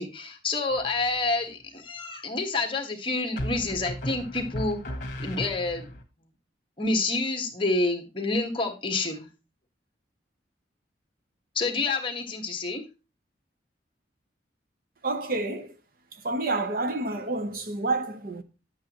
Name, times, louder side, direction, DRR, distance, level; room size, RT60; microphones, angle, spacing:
voice 1, 0.0-4.8 5.2-5.9 6.8-9.3 11.5-12.8, left 3 dB, 30° left, 1.4 m, -28 dB
sound 1, 0.7-1.3 3.4-6.0, left 1 dB, 45° left, 1.6 m, -35 dB
voice 2, 15.0-15.7 16.1-18.4, right 2 dB, 50° right, 0.9 m, -29 dB
10.0 x 8.1 x 3.0 m
head